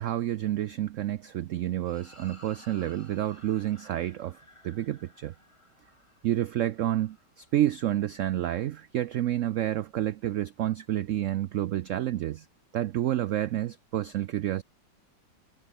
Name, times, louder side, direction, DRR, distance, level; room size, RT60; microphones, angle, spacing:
voice 1, 0.0-4.4 4.6-5.3 6.2-12.5 12.7-14.6, right 13 dB, 80° right, 0.6 m, -29 dB
sound 1, 1.9-8.4, left 1 dB, 15° left, 3.7 m, -57 dB
omnidirectional pair, 1.9 m